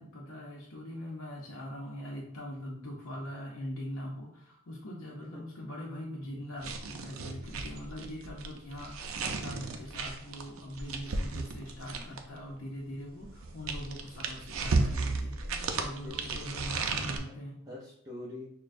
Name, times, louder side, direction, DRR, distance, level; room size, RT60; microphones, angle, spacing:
voice 1, 0.0-15.4 15.7-17.6, equal, 80° left, -3 dB, 0.7 m, -42 dB
sound 1, 6.6-12.4 13.2-17.2, right 3 dB, 80° right, 0.5 m, -34 dB
voice 2, 15.4-16.4 17.1-17.2 17.6-18.5, left 2 dB, 20° right, -6 dB, 0.6 m, -46 dB
6.3 x 2.2 x 2.5 m, 0.70 s
head